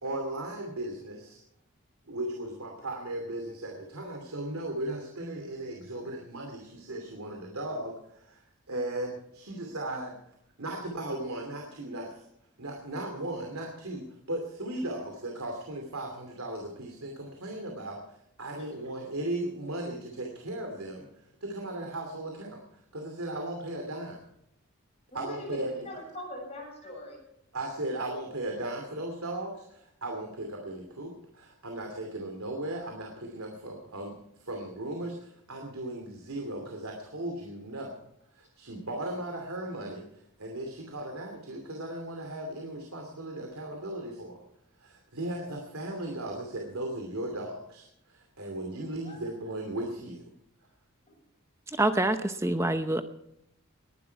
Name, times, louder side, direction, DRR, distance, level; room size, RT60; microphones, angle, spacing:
voice 1, 0.0-1.4 2.1-8.4 8.7-10.2 10.6-12.3 12.6-21.1 21.4-22.6 22.9-24.2 25.1-25.7 26.8-26.9 27.5-38.0 38.3-44.4 44.8-50.2, right 1 dB, 80° right, 2 dB, 2.7 m, -37 dB
voice 2, 25.1-27.2 49.0-49.3 51.1-51.2, left 1 dB, 30° left, -1 dB, 7.0 m, -42 dB
voice 3, 51.8-53.0, right 2 dB, 10° right, 9 dB, 0.7 m, -26 dB
20.0 x 11.5 x 4.7 m, 0.77 s
head